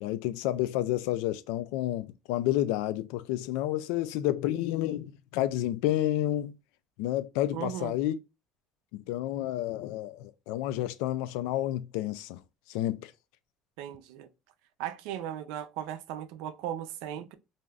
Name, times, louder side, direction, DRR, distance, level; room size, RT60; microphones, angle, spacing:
voice 1, 0.0-6.5 7.0-8.1 8.9-12.4 12.7-13.1, left 13 dB, 85° left, 0.3 m, -30 dB
voice 2, 7.5-7.9 13.8-14.3 14.8-17.3, right 11 dB, 75° right, 0.4 m, -37 dB
2.6 x 2.3 x 3.2 m
cardioid pair, 180°, 0 cm